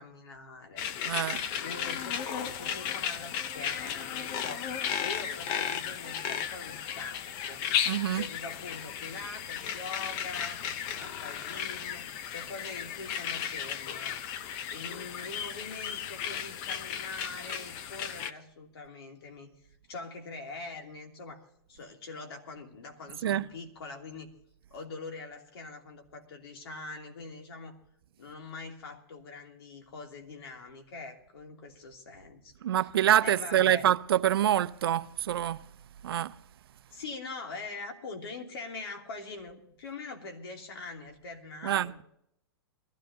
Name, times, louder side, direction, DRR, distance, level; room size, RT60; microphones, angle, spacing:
voice 1, 0.0-0.9 1.6-4.7 5.0-10.6 11.0-14.2 14.7-19.5 19.9-24.3 24.7-27.8 28.2-32.5 33.2-33.9 36.9-42.0, left 3 dB, 75° left, 3.0 m, -43 dB
sound 1, 0.8-18.3, left 9 dB, 35° left, 0.7 m, -35 dB
voice 2, 1.0-1.5 7.9-8.2 23.2-23.5 32.6-35.7 36.0-36.4 41.6-41.9, right 11 dB, 75° right, 0.6 m, -26 dB
22.0 x 13.5 x 2.8 m
hypercardioid pair, 145°, 13 cm